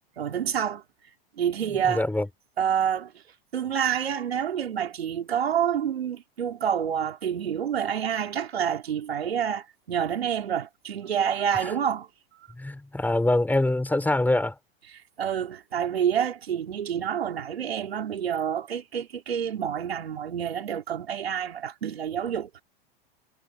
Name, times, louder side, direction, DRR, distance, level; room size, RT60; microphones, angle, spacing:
voice 1, 0.2-0.8 1.4-2.1 2.6-3.1 3.5-12.1 15.2-22.6, right 8 dB, 85° right, 4.0 m, -28 dB
voice 2, 1.8-2.3 11.6-11.7 12.6-14.5, left 2 dB, 5° left, 5.9 m, -24 dB
hypercardioid pair, 110°, 30 cm